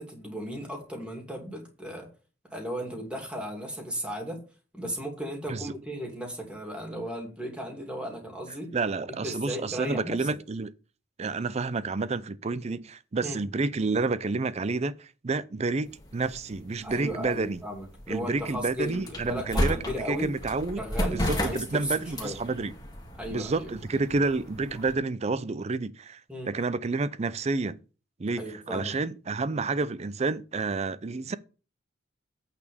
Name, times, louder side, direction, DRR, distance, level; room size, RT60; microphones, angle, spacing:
voice 1, 0.0-2.1 2.5-4.4 4.7-8.7 9.1-10.4 13.2-13.4 16.8-20.3 20.8-22.4 23.2-23.7 26.3-26.5 28.4-29.0, equal, 5° right, 2.5 m, -35 dB
voice 2, 8.7-10.7 11.2-17.6 18.1-19.8 20.0-20.8 21.1-22.7 23.3-26.2 26.5-27.8 28.2-31.4, right 3 dB, 35° right, 0.5 m, -29 dB
sound 1, 15.9-24.9, equal, 20° left, 2.3 m, -34 dB
8.6 x 4.3 x 6.9 m
head